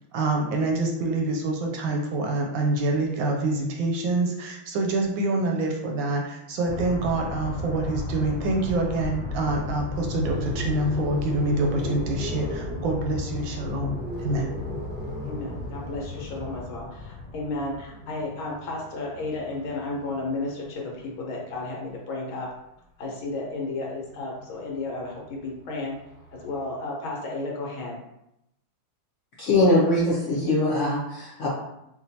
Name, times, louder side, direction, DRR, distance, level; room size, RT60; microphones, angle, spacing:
voice 1, 0.1-13.9 14.2-14.5, right 2 dB, 75° right, 1 dB, 1.2 m, -26 dB
sound 1, 6.7-18.3, left 2 dB, 40° left, 1.7 m, -35 dB
sound 2, 9.9-21.8 23.1-26.7, left 1 dB, 45° right, 0.6 m, -37 dB
voice 2, 15.2-22.5 23.0-26.0 26.3-28.0, left 2 dB, 75° left, -2 dB, 1.7 m, -33 dB
voice 3, 29.4-31.5, left 1 dB, 90° left, -7 dB, 0.6 m, -22 dB
5.0 x 2.2 x 2.7 m, 0.82 s
omnidirectional pair, 2.3 m